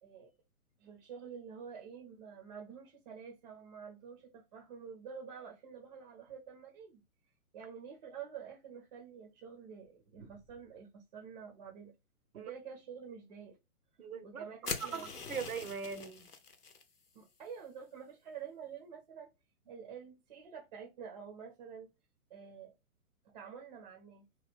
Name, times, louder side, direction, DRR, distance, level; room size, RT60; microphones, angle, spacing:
voice 1, 0.0-0.3 0.8-7.0 7.5-11.9 12.4-13.6 14.2-15.2 17.1-19.3 19.7-21.9 22.3-22.7 23.2-24.3, right 7 dB, 30° right, 0.6 m, -48 dB
voice 2, 14.0-16.3, right 6 dB, 70° right, 0.7 m, -41 dB
sound 1, 14.6-16.8, left 5 dB, 85° left, 0.7 m, -42 dB
3.0 x 2.2 x 3.4 m
figure-of-eight pair, 125°, 44 cm